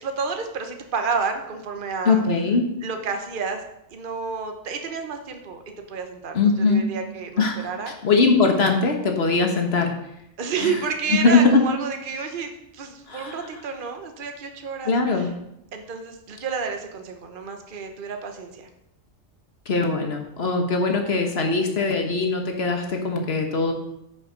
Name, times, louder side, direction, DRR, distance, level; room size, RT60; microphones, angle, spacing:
voice 1, 0.0-2.2 2.8-3.6 3.9-5.6 5.9-6.4 6.7-7.9 10.4-15.3 15.7-18.7, right 5 dB, 45° right, 5 dB, 1.1 m, -30 dB
voice 2, 2.1-2.6 6.3-6.8 7.4-9.9 10.6-10.8 11.1-11.6 13.1-13.4 14.9-15.3 19.7-23.7, left 3 dB, 55° left, 3 dB, 1.6 m, -21 dB
10.0 x 6.1 x 5.1 m, 0.84 s
omnidirectional pair, 1.3 m